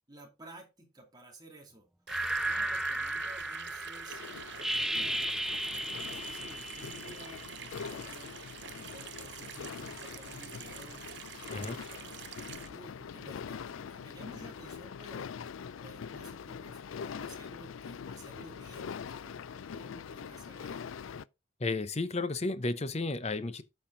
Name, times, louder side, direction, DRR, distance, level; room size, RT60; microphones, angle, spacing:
voice 1, 0.1-1.9 2.4-5.3 5.7-8.4 8.7-12.3 12.7-15.3 15.8-20.8, right 1 dB, 20° right, 2.5 m, -53 dB
sound 1, 2.1-7.5, right 1 dB, ahead, 0.3 m, -35 dB
Water tap faucet / Sink (filling or washing), 2.1-12.7, right 9 dB, 60° right, 0.7 m, -47 dB
sound 2, 4.1-21.2, left 6 dB, 85° left, 0.4 m, -43 dB
voice 2, 21.6-23.6, left 3 dB, 35° left, 0.8 m, -33 dB
8.9 x 5.7 x 3.9 m
head